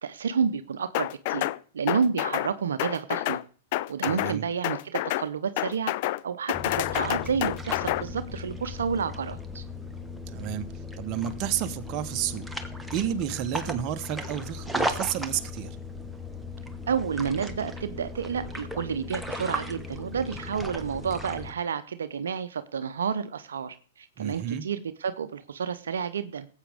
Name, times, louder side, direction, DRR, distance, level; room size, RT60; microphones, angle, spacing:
voice 1, 0.0-1.5 1.7-3.4 3.9-5.9 6.2-9.6 16.9-26.5, right 6 dB, 75° right, 0.7 m, -30 dB
sound 1, 0.9-1.6 1.9-2.5 2.8-3.4 3.7-4.4 4.6-5.3 5.6-6.2 6.5-8.0, left 17 dB, 55° left, 0.4 m, -28 dB
voice 2, 4.0-4.4 10.3-10.7 11.0-12.5 12.9-15.8 24.2-24.6, right 10 dB, 40° right, 1.0 m, -31 dB
sound 2, 6.5-21.5, left 1 dB, 5° right, 1.2 m, -36 dB
18.5 x 8.2 x 3.5 m
hypercardioid pair, 110°, 0 cm